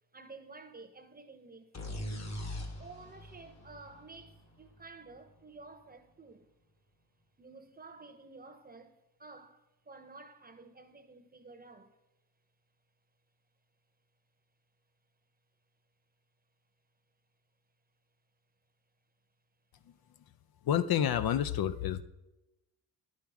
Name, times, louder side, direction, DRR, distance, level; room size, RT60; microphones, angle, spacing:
voice 1, 0.1-2.1 2.8-6.5 7.4-12.0, right 3 dB, 25° right, 0.8 m, -52 dB
sound 1, 1.7-5.4, left 1 dB, 40° left, 1.3 m, -42 dB
voice 2, 20.6-22.0, left 10 dB, 65° left, 0.5 m, -29 dB
10.0 x 6.4 x 3.5 m
cardioid pair, 80°, 40 cm